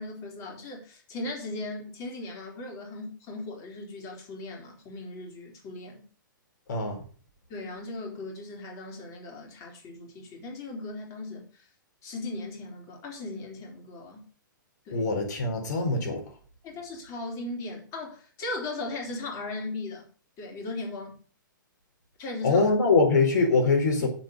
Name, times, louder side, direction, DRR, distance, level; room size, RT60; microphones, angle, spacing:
voice 1, 0.0-6.0 7.5-11.7 12.0-14.2 14.9-15.1 16.6-20.1 20.4-21.2 22.2-22.7 24.0-24.1, left 2 dB, 30° left, 4.0 m, -38 dB
voice 2, 6.7-7.0 14.9-16.2 22.4-24.1, left 3 dB, 55° left, 4.1 m, -23 dB
7.7 x 7.5 x 6.6 m
figure-of-eight pair, 115°, 11 cm